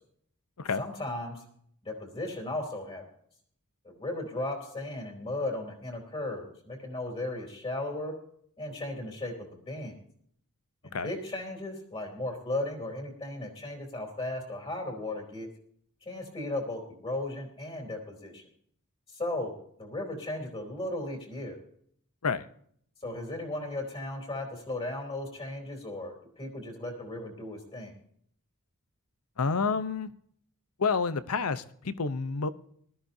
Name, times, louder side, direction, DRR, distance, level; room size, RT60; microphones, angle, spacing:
voice 1, 0.8-1.4 1.8-3.0 3.8-8.1 8.6-9.9 10.8-15.5 16.0-18.4 19.1-21.6 23.0-27.9, left 2 dB, 25° left, 1 dB, 3.4 m, -36 dB
voice 2, 29.4-30.1 30.8-32.5, left 5 dB, 75° left, 14 dB, 0.8 m, -29 dB
20.0 x 13.5 x 2.7 m, 0.64 s
head